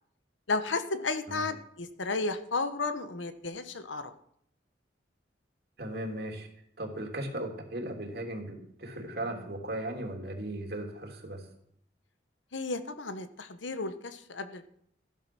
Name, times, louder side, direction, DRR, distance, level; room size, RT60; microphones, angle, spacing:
voice 1, 0.5-4.1 12.5-14.7, left 3 dB, 90° left, 10 dB, 1.2 m, -33 dB
voice 2, 5.8-6.5 6.8-11.5, right 1 dB, 55° right, 2 dB, 3.0 m, -37 dB
15.5 x 11.5 x 6.1 m, 0.70 s
head